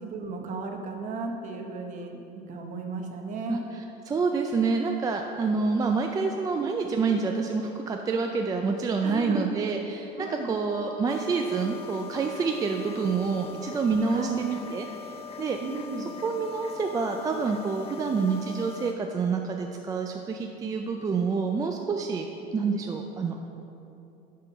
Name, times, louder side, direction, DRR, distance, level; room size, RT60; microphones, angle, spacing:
voice 1, 0.0-3.6 9.0-9.5 10.2-10.6 14.1-14.5 15.6-16.1, right 3 dB, 45° right, 3 dB, 0.9 m, -35 dB
voice 2, 4.1-15.6 16.2-23.4, right 4 dB, 20° right, 3 dB, 0.3 m, -28 dB
sound 1, 11.1-18.9, left 6 dB, 35° left, 0.6 m, -42 dB
10.0 x 3.8 x 5.5 m, 2.9 s
cardioid pair, 130°, 18 cm